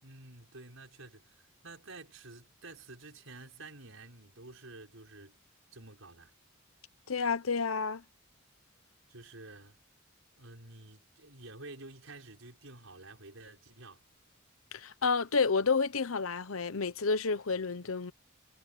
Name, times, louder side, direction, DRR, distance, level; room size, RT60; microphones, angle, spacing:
voice 1, 0.0-5.4 5.7-6.3 9.1-9.8 10.4-14.0, right 2 dB, 75° right, 6.4 m, -50 dB
voice 2, 7.1-8.0 14.7-18.1, left 4 dB, 90° left, 0.9 m, -30 dB
head